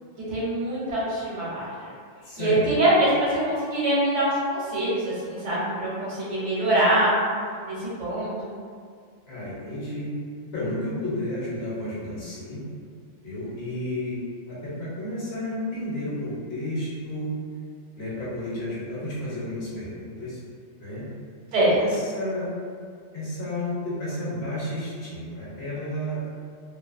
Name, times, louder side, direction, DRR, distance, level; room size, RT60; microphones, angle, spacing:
voice 1, 0.3-1.7 2.4-7.1 7.6-8.5 21.5-21.8, right 1 dB, 70° right, -8 dB, 1.1 m, -24 dB
voice 2, 2.2-2.7 9.2-10.1 10.5-12.6 13.2-14.2 14.5-17.3 18.0-20.4 20.8-21.0 21.8-22.5 23.1-26.2, left 1 dB, 60° left, -9 dB, 0.9 m, -32 dB
2.6 x 2.4 x 2.4 m, 2.1 s
omnidirectional pair, 1.3 m